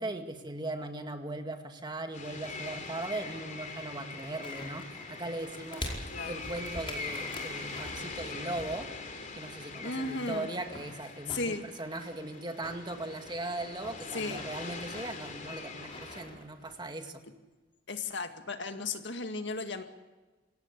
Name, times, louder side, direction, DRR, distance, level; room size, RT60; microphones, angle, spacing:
voice 1, 0.0-8.9 9.4-17.2, right 2 dB, 25° right, 5 dB, 2.1 m, -39 dB
sound 1, 2.1-16.2, left 3 dB, 45° left, 3.5 m, -43 dB
sound 2, 4.4-8.9 9.1-12.2 12.6-16.9 17.1-17.2, left 1 dB, 30° left, 5.0 m, -46 dB
voice 2, 6.1-6.4 9.8-10.5 11.3-11.7 14.1-14.5 17.9-19.8, left 3 dB, 70° left, 7 dB, 2.0 m, -35 dB
26.5 x 17.5 x 8.3 m, 1.2 s
head